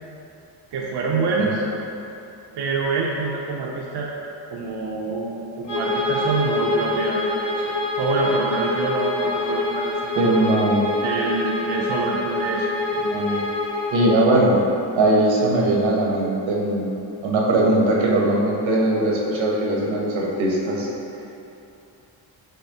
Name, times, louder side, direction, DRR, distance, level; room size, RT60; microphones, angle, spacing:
voice 1, 0.7-1.6 2.6-4.1 4.5-10.4 11.0-12.7, right 3 dB, 60° right, -3 dB, 0.5 m, -26 dB
Bowed string instrument, 5.6-14.2, left 2 dB, 40° left, 1.4 m, -25 dB
voice 2, 10.2-10.8 13.0-13.4 13.9-14.6 15.0-16.9 17.2-20.9, right 2 dB, 80° right, -3 dB, 1.0 m, -20 dB
5.5 x 3.5 x 2.8 m, 2.9 s
wide cardioid pair, 140°, 45 cm